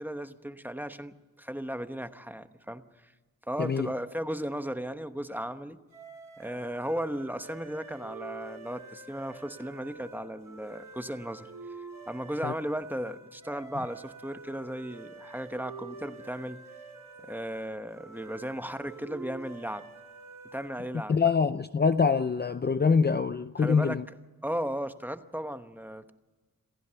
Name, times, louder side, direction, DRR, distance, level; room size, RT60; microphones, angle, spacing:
voice 1, 0.0-3.1 3.5-5.8 6.4-11.5 12.1-16.6 17.2-19.8 20.5-21.2 23.6-24.0 24.4-26.1, equal, 5° right, 1.0 m, -36 dB
voice 2, 3.6-3.9 12.4-12.5 21.1-24.0, left 5 dB, 30° left, 0.6 m, -25 dB
sound 1, 5.9-21.0, right 4 dB, 70° right, 5.1 m, -47 dB
27.5 x 15.0 x 7.0 m
wide cardioid pair, 115°, 35 cm